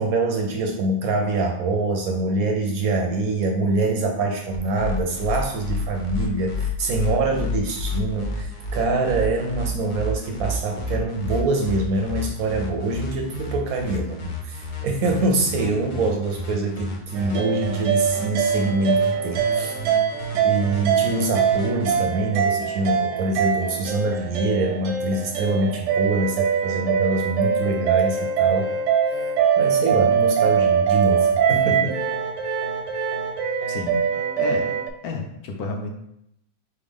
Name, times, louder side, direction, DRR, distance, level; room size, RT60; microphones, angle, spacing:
voice 1, 0.0-19.8 20.4-28.7 29.6-32.0, right 2 dB, 70° right, 3 dB, 0.9 m, -24 dB
sound 1, 4.5-22.0, left 2 dB, 90° left, 0.4 m, -31 dB
sound 2, 17.1-34.9, right 7 dB, 90° right, 1.2 m, -23 dB
voice 2, 33.7-34.0 34.4-34.8 35.0-36.0, left 4 dB, 70° left, 2 dB, 1.1 m, -30 dB
4.0 x 3.4 x 3.6 m, 0.77 s
omnidirectional pair, 1.8 m